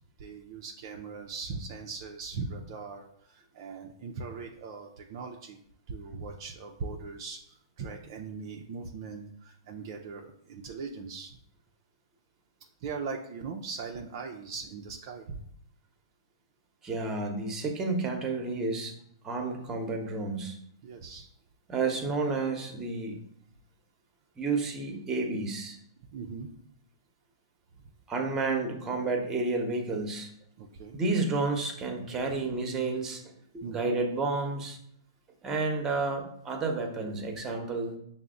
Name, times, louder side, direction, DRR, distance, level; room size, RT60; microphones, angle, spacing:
voice 1, 0.2-5.6 5.9-11.4 12.8-15.4 20.8-21.3 26.1-26.5 30.6-31.0 33.6-33.9, right 4 dB, 55° right, 2 dB, 0.4 m, -40 dB
voice 2, 16.8-18.9 19.2-20.6 21.7-23.2 24.4-25.8 28.1-30.3 30.9-33.2 33.5-34.8 35.4-38.0, right 3 dB, 20° right, 3 dB, 0.9 m, -31 dB
5.6 x 2.1 x 3.7 m, 0.71 s
hypercardioid pair, 120°, 2 cm